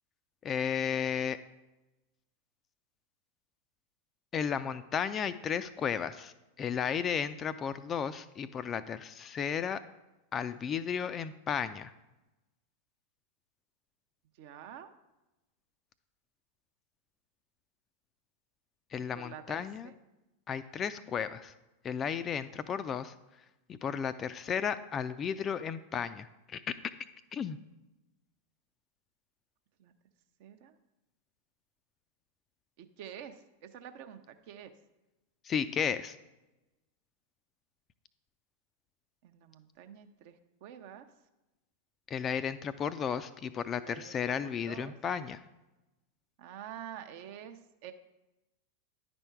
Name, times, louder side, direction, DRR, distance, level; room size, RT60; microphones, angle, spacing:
voice 1, 0.4-1.4 4.3-6.3 6.6-9.8 10.3-11.9 18.9-19.9 20.5-21.5 21.8-23.1 23.7-26.6 27.3-27.6 35.5-36.1 42.1-45.4, left 7 dB, 25° left, 13 dB, 0.3 m, -34 dB
voice 2, 14.4-14.9 19.0-19.9 29.8-29.9 30.4-30.8 32.8-34.7 39.2-41.1 43.7-45.0 46.4-47.9, right 9 dB, 50° right, 9 dB, 0.6 m, -48 dB
10.5 x 4.4 x 4.5 m, 1.0 s
figure-of-eight pair, 90°, 0 cm